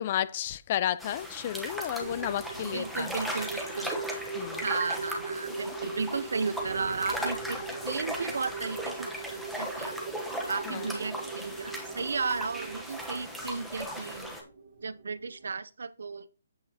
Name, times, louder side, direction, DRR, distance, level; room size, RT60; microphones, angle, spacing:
voice 1, 0.0-3.2 4.3-4.6 10.7-10.9, left 11 dB, 30° left, 0.4 m, -32 dB
sound 1, 1.0-14.4, equal, ahead, 1.0 m, -38 dB
sound 2, 2.0-15.6, right 4 dB, 55° right, 1.5 m, -40 dB
voice 2, 2.6-4.0 4.6-9.1 9.3-9.9 10.5-14.4 14.8-16.3, right 4 dB, 80° right, 0.6 m, -34 dB
8.1 x 8.1 x 2.8 m
hypercardioid pair, 165°, 0 cm